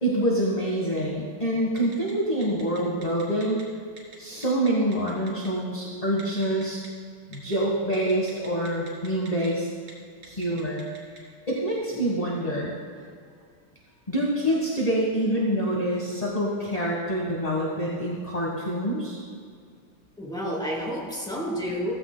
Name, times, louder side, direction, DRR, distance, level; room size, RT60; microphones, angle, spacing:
voice 1, 0.0-3.6 4.2-6.8 7.3-9.7 10.2-10.8 11.5-12.7 14.1-19.2, right 1 dB, 20° left, -3 dB, 1.2 m, -26 dB
Telephone, 1.8-2.1 2.4-3.6 4.0-4.2 4.4-5.5 6.2-6.9 7.3-7.5 7.9-9.5 9.8-9.9 10.2-11.2, right 4 dB, 25° right, 2.7 m, -46 dB
voice 2, 20.2-21.9, equal, ahead, -4 dB, 2.6 m, -30 dB
16.0 x 15.0 x 2.2 m, 2.1 s
omnidirectional pair, 2.2 m